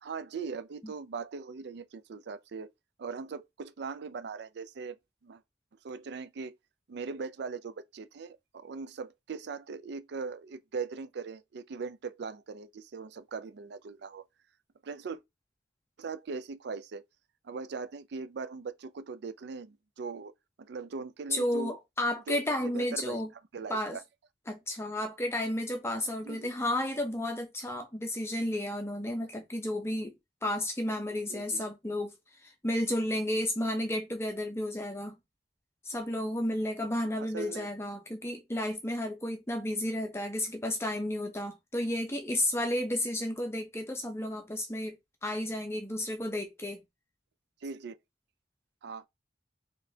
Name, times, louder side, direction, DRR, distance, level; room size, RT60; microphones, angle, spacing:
voice 1, 0.0-2.7 3.0-5.0 5.2-5.4 5.8-6.6 6.9-14.2 14.8-15.2 16.0-17.0 17.4-20.3 20.6-21.8 22.3-23.2 23.5-24.0 26.2-26.5 31.3-31.6 37.2-37.7 47.6-48.0 48.8-49.0, right 5 dB, 65° right, 0.4 m, -40 dB
voice 2, 21.3-23.3 23.7-24.0 24.5-30.1 30.4-32.1 32.4-35.2 35.9-45.0 45.2-46.8, left 1 dB, 15° left, 0.7 m, -32 dB
4.0 x 3.1 x 2.7 m
head